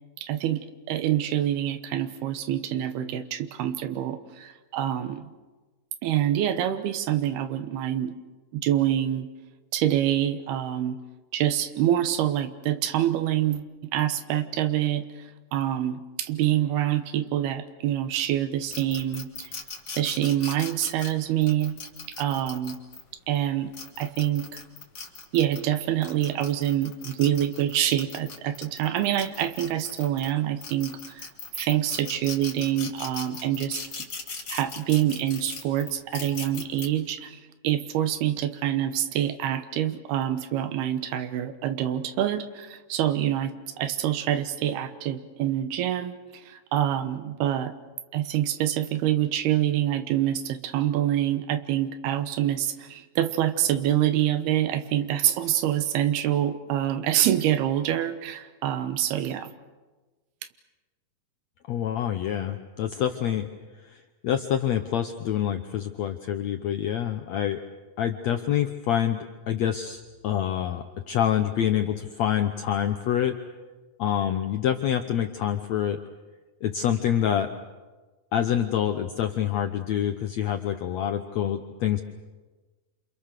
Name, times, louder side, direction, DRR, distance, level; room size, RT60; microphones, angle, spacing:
voice 1, 0.2-5.3 6.0-8.2 8.5-9.3 9.7-11.0 11.3-15.1 15.5-19.5 19.9-21.8 22.2-22.8 23.3-24.6 25.3-31.3 31.6-33.9 34.5-47.7 48.1-59.5, right 11 dB, 85° right, 11 dB, 3.2 m, -26 dB
sound 1, 18.7-23.0 23.6-25.6 26.0-30.3 30.6-36.9, left 4 dB, 30° left, 2.8 m, -38 dB
voice 2, 61.7-63.5 63.8-67.6 68.0-69.2 69.5-73.4 74.0-76.0 76.6-77.5 78.3-82.0, left 10 dB, 75° left, 7 dB, 1.6 m, -26 dB
28.0 x 27.5 x 6.7 m, 1.3 s
omnidirectional pair, 4.4 m